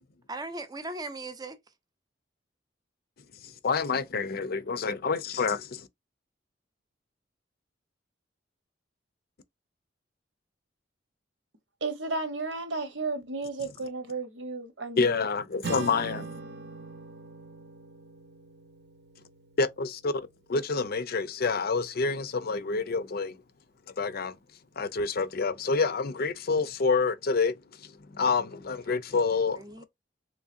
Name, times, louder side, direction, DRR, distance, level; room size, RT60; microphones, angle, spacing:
voice 1, 0.3-1.6 29.1-29.8, right 2 dB, 20° right, 0.6 m, -39 dB
voice 2, 3.4-5.9 13.6-13.7 15.0-16.3 19.6-20.2 20.5-23.4 24.0-24.4 24.8-29.8, left 4 dB, 55° left, 0.5 m, -28 dB
voice 3, 11.8-15.3, right 3 dB, 80° right, 1.1 m, -33 dB
Acoustic guitar / Strum, 15.6-20.3, right 3 dB, 65° right, 0.8 m, -41 dB
3.6 x 3.1 x 2.6 m
head